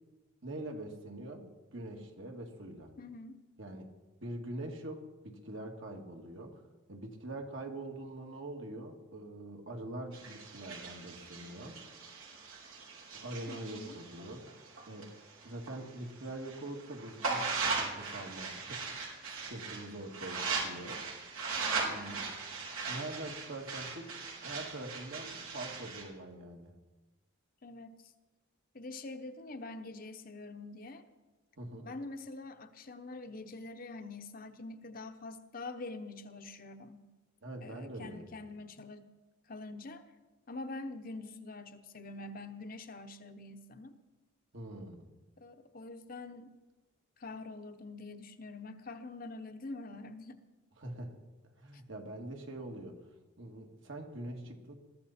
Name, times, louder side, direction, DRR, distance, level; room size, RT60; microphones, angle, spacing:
voice 1, 0.4-2.9 3.6-3.9 4.2-6.6 6.9-11.8 12.1-12.2 13.1-14.4 14.9-15.1 15.4-18.8 19.3-21.0 21.8-22.3 22.9-24.1 24.4-26.7 31.6-31.9 37.4-38.3 44.5-45.0 50.8-51.2 51.6-53.0 53.4-54.7, right 1 dB, 65° right, 2 dB, 2.3 m, -44 dB
voice 2, 3.0-3.4 13.5-14.0 21.6-22.3 27.6-28.1 28.7-31.0 31.8-37.1 37.6-39.1 39.5-40.1 40.5-44.0 45.4-46.6 47.2-50.4, left 2 dB, 40° left, 7 dB, 1.0 m, -45 dB
sound 1, 10.1-15.7 16.1-26.0, right 4 dB, 90° right, 4.4 m, -39 dB
21.0 x 14.0 x 4.3 m, 1.1 s
head